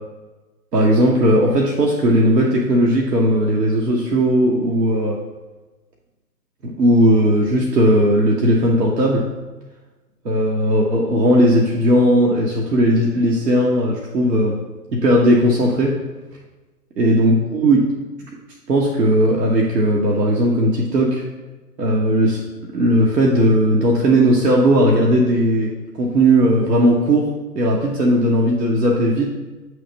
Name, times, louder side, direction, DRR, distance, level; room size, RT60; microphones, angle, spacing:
voice 1, 0.7-5.2 6.6-9.2 10.2-14.6 14.9-16.0 17.0-17.8 18.7-21.2 21.8-22.4 22.7-25.7 26.0-27.3 27.5-29.3, equal, 80° right, -2 dB, 1.0 m, -17 dB
7.6 x 3.3 x 3.9 m, 1.2 s
figure-of-eight pair, 135°, 49 cm